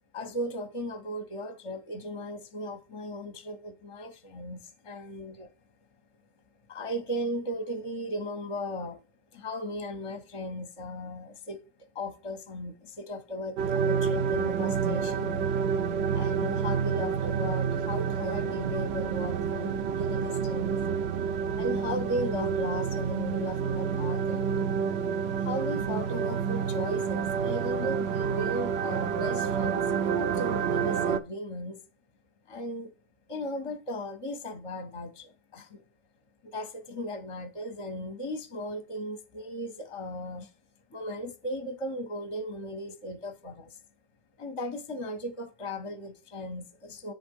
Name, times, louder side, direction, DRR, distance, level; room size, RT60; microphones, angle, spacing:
voice 1, 0.1-5.5 6.7-9.0 9.3-11.6 11.9-15.5 16.1-20.8 21.5-24.7 25.4-31.8 32.5-32.9 33.3-35.8 36.4-40.5 40.9-43.8 44.4-47.1, equal, 35° left, 0.7 m, -36 dB
sound 1, 13.6-31.2, right 7 dB, 75° right, 0.8 m, -29 dB
7.7 x 3.7 x 5.2 m
omnidirectional pair, 1.1 m